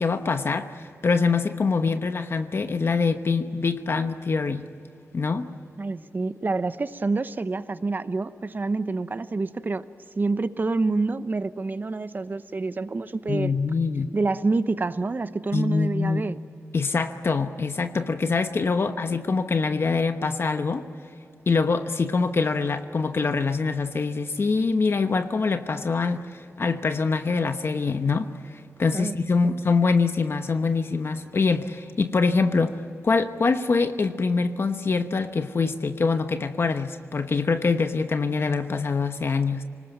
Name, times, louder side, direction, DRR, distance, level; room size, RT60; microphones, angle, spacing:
voice 1, 0.0-4.7 5.1-5.5 13.3-14.1 15.5-16.2 16.7-20.8 21.5-32.8 33.0-39.6, left 4 dB, 50° left, 8 dB, 1.1 m, -24 dB
voice 2, 5.8-9.9 10.2-13.5 14.1-16.4 18.7-18.9 28.9-29.2 29.4-29.5, right 3 dB, 35° right, 13 dB, 0.9 m, -27 dB
25.5 x 19.5 x 9.1 m, 2.7 s
wide cardioid pair, 90°, 5 cm